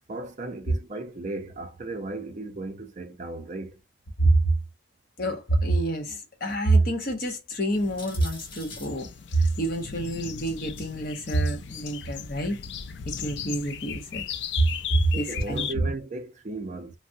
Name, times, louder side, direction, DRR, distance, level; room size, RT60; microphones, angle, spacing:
voice 1, 0.1-3.7 15.1-16.9, right 2 dB, 40° right, 0.5 m, -36 dB
voice 2, 4.2-4.5 5.2-12.6 13.1-14.2 14.6-14.7 15.0-15.9, right 2 dB, 50° left, 1.0 m, -26 dB
sound 1, 7.7-15.7, left 8 dB, 65° left, 0.4 m, -37 dB
sound 2, 8.0-8.9 10.7-11.4 12.2-12.3 13.9-14.0, left 3 dB, 25° left, 0.8 m, -44 dB
3.3 x 2.0 x 2.6 m
head